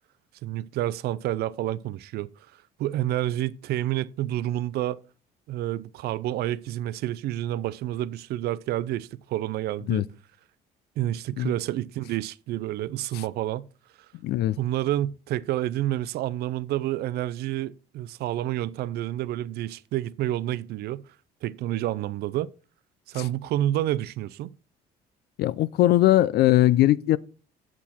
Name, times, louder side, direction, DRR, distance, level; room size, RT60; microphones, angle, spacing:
voice 1, 0.4-2.3 2.8-5.0 5.5-10.0 11.0-13.7 14.6-21.0 21.4-22.5 23.1-24.5, right 13 dB, 70° right, 0.5 m, -29 dB
voice 2, 14.2-14.6 23.2-23.3 25.4-27.2, left 15 dB, 70° left, 0.5 m, -20 dB
8.4 x 7.3 x 4.3 m
cardioid pair, 110°, 17 cm